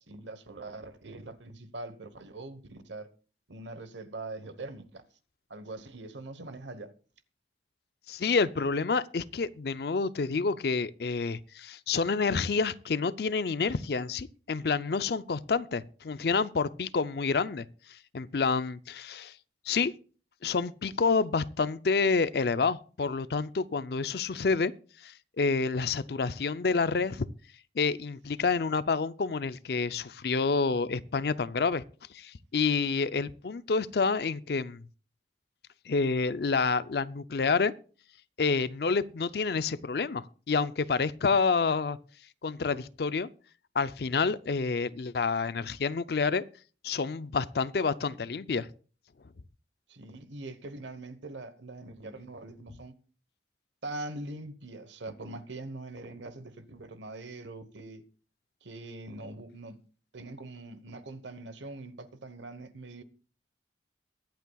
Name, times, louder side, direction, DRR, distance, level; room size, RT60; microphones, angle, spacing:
voice 1, 0.0-3.1 3.5-5.0 5.5-6.9 49.9-52.9 53.8-58.1 58.6-59.8 60.1-63.0, right 2 dB, 80° right, 1.1 m, -42 dB
voice 2, 8.1-19.3 19.7-19.9 20.4-24.7 25.0-27.3 27.8-31.8 32.1-34.8 35.9-37.7 38.4-42.0 42.4-43.3 43.7-46.4 46.8-48.7, left 4 dB, 55° left, 0.5 m, -28 dB
22.5 x 8.2 x 2.3 m
head